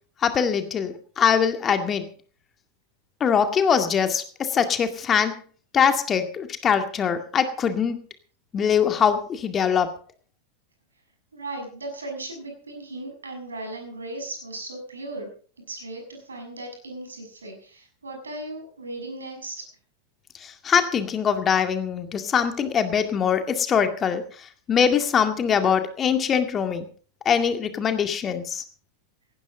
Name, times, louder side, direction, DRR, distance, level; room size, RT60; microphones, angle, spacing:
voice 1, 0.2-2.1 3.2-5.4 5.7-8.0 8.5-10.0 20.4-26.9 27.3-28.6, left 7 dB, 25° left, 7 dB, 2.1 m, -23 dB
voice 2, 11.3-15.3 15.7-19.6, right 2 dB, 75° right, 4 dB, 6.3 m, -37 dB
18.5 x 16.0 x 3.8 m, 0.42 s
figure-of-eight pair, 90°, 0 cm